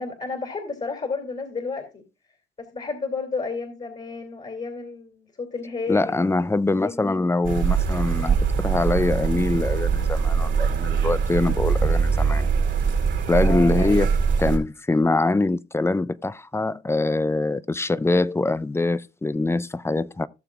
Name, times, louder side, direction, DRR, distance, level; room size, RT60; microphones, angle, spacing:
voice 1, 0.0-2.0 2.6-6.4 6.7-7.0 13.4-14.0, left 4 dB, 35° left, 2.6 m, -32 dB
voice 2, 5.9-12.5 13.3-14.1 14.4-20.3, left 2 dB, 15° left, 0.5 m, -23 dB
sound 1, 7.4-14.6, right 6 dB, 70° right, 2.3 m, -22 dB
16.5 x 6.9 x 2.4 m
cardioid pair, 90°, 20 cm